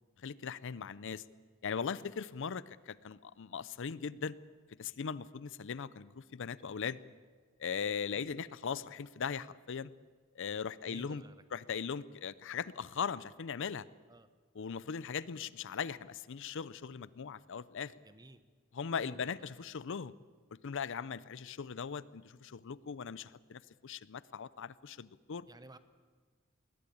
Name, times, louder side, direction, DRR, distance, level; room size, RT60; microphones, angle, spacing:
voice 1, 0.2-1.2 1.6-4.4 4.8-7.0 7.6-9.9 10.3-11.2 11.5-13.9 14.6-17.9 18.7-20.1 20.6-25.4, left 6 dB, 65° left, 18 dB, 0.5 m, -39 dB
voice 2, 10.8-11.6 14.1-14.3 18.0-18.4 19.0-19.4 25.5-25.8, right 2 dB, 20° right, 12 dB, 1.0 m, -55 dB
21.0 x 18.5 x 8.6 m, 1.5 s
head